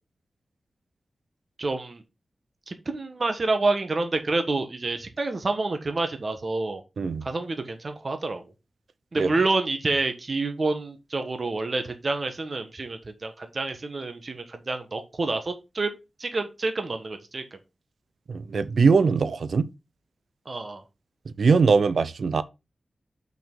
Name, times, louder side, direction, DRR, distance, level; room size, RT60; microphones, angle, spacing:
voice 1, 1.6-2.0 2.7-6.8 7.2-8.4 9.1-15.9 16.2-17.4 20.4-20.8, right 3 dB, 45° right, 1.3 m, -28 dB
voice 2, 18.3-19.7 21.4-22.4, right 5 dB, 70° right, 0.6 m, -21 dB
5.9 x 5.3 x 5.3 m
wide cardioid pair, 115°, 0 cm